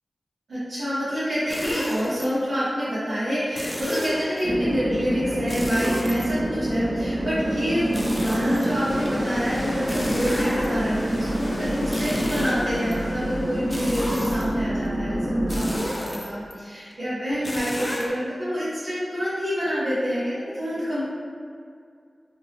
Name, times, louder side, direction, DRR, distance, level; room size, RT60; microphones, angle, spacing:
voice 1, 0.5-21.0, equal, 80° right, -14 dB, 0.9 m, -27 dB
sound 1, 1.5-2.2 3.5-4.4 5.5-6.7 7.9-9.1 9.9-11.0 11.8-13.0 13.7-14.7 15.5-16.5 17.4-18.1, equal, 15° left, 0.4 m, -32 dB
sound 2, 4.4-15.8, right 1 dB, 25° right, 0.9 m, -27 dB
sound 3, 7.0-14.1, equal, 45° left, 0.8 m, -37 dB
2.9 x 2.7 x 2.8 m, 2.2 s
wide cardioid pair, 80°, 0 cm